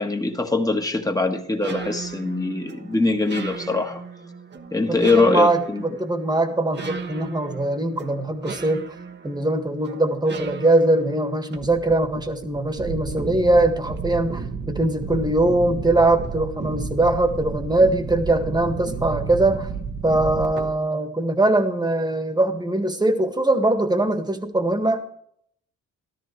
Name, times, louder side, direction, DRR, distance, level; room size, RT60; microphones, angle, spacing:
voice 1, 0.0-4.0 4.7-5.8, left 3 dB, 10° left, 4 dB, 1.5 m, -22 dB
sound 1, 1.6-20.7, right 5 dB, 35° right, 1.1 m, -34 dB
voice 2, 4.9-8.8 9.2-19.7 20.0-25.0, right 2 dB, 15° right, 7 dB, 1.7 m, -21 dB
13.5 x 13.0 x 3.2 m, 0.67 s
cardioid pair, 90°, 30 cm